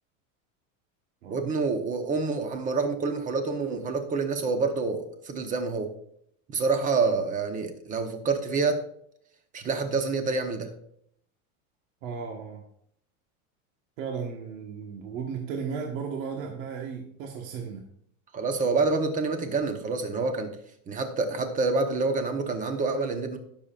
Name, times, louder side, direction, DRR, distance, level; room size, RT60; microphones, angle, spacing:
voice 1, 1.3-5.9 6.5-8.8 9.5-10.7 18.3-20.5 20.9-23.4, right 4 dB, 20° right, 6 dB, 1.0 m, -27 dB
voice 2, 12.0-12.6 14.0-17.9, right 6 dB, 70° right, 1 dB, 1.5 m, -35 dB
18.0 x 6.9 x 2.5 m, 0.70 s
supercardioid pair, 165°, 42 cm